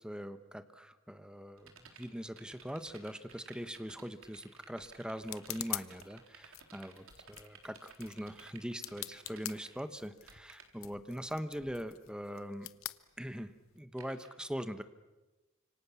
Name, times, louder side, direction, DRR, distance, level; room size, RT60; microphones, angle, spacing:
voice 1, 0.0-12.7 13.2-14.8, equal, 5° right, 10 dB, 1.2 m, -42 dB
sound 1, 1.6-9.8 10.0-10.7 14.0-14.3, right 6 dB, 80° right, 3.9 m, -55 dB
sound 2, 3.9-13.8, left 15 dB, 80° left, 0.8 m, -47 dB
30.0 x 26.5 x 7.2 m, 1.1 s
head